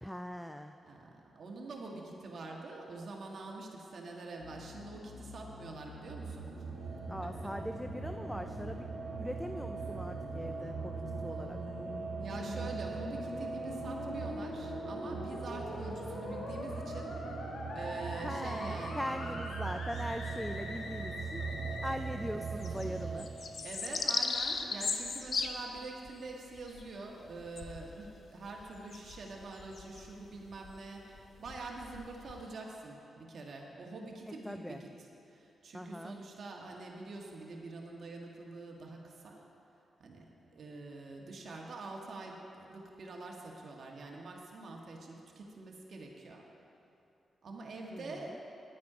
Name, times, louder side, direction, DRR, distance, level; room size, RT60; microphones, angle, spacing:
voice 1, 0.0-0.7 7.1-8.9 9.2-11.6 18.2-23.3 34.4-34.8 35.7-36.1 47.9-48.4, equal, 5° left, 7 dB, 0.4 m, -41 dB
voice 2, 0.8-6.5 7.4-7.5 12.2-17.2 17.7-19.4 21.5-21.8 23.6-39.4 40.0-46.4 47.4-48.4, right 3 dB, 60° right, 0 dB, 1.5 m, -45 dB
sound 1, 4.4-22.0, left 3 dB, 80° left, 1.1 m, -45 dB
Black Asylum, 5.8-23.2, right 4 dB, 80° right, 1.4 m, -40 dB
sound 2, 19.9-21.0 21.4-21.5 21.8-32.5, left 4 dB, 55° left, 0.7 m, -38 dB
10.5 x 9.4 x 5.0 m, 2.9 s
cardioid pair, 85°, 0 cm